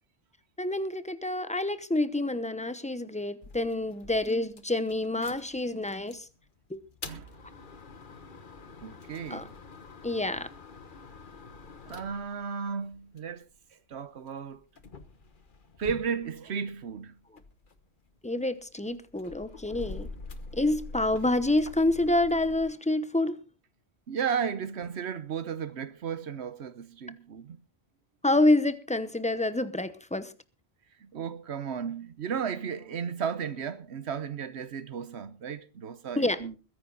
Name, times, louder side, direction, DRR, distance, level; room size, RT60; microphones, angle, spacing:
voice 1, 0.6-6.3 6.7-6.8 9.3-9.5 10.0-10.5 18.2-20.1 20.5-23.4 28.2-30.3 36.2-36.4, left 2 dB, 5° left, 0.9 m, -27 dB
sound 1, 3.4-6.3 6.8-13.5 14.3-16.9 17.2-22.6, left 3 dB, 50° left, 1.3 m, -46 dB
voice 2, 8.8-9.5 11.9-13.5 13.9-14.6 15.8-17.1 24.1-27.6 31.0-36.6, right 7 dB, 85° right, 1.2 m, -34 dB
21.5 x 10.5 x 4.0 m
omnidirectional pair, 1.1 m